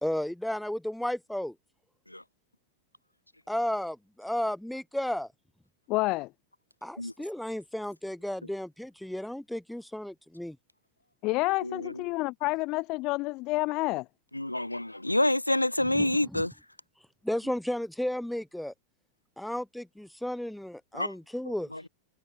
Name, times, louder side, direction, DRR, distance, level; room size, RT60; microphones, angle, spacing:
voice 1, 0.0-1.5 3.5-5.3 6.8-10.6 15.9-16.5 17.2-18.7 19.4-21.7, left 1 dB, ahead, 1.4 m, -33 dB
voice 2, 5.9-6.3 11.2-14.0, left 22 dB, 40° left, 0.9 m, -29 dB
voice 3, 11.6-12.0 14.3-16.5 20.9-21.1 21.7-21.9, left 1 dB, 85° left, 0.5 m, -28 dB
figure-of-eight pair, 90°, 0 cm